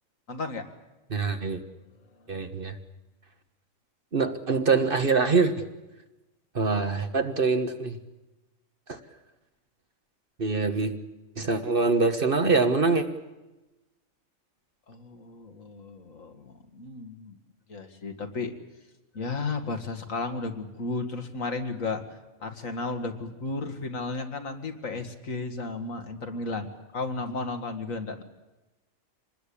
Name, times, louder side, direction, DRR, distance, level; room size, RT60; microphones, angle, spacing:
voice 1, 0.3-0.6 14.9-17.4 17.7-18.5 19.1-26.7 26.9-28.2, left 3 dB, 75° left, 6 dB, 2.3 m, -34 dB
voice 2, 1.1-1.6 2.3-2.8 4.1-5.7 6.5-8.0 8.9-9.0 10.4-10.9 11.4-13.1, right 4 dB, 40° right, 8 dB, 1.5 m, -24 dB
25.5 x 20.0 x 8.6 m, 1.0 s
omnidirectional pair, 1.4 m